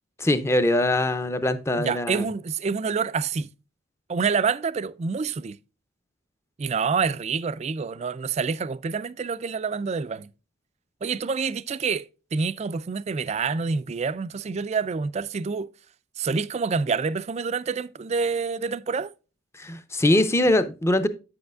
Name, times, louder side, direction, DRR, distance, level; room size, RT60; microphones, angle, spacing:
voice 1, 0.2-2.2 19.6-21.1, left 1 dB, 15° left, 0.6 m, -22 dB
voice 2, 1.8-3.5 4.1-5.6 6.6-10.3 11.0-15.7 16.2-19.1, right 5 dB, 35° right, 0.3 m, -27 dB
8.7 x 7.8 x 2.3 m
head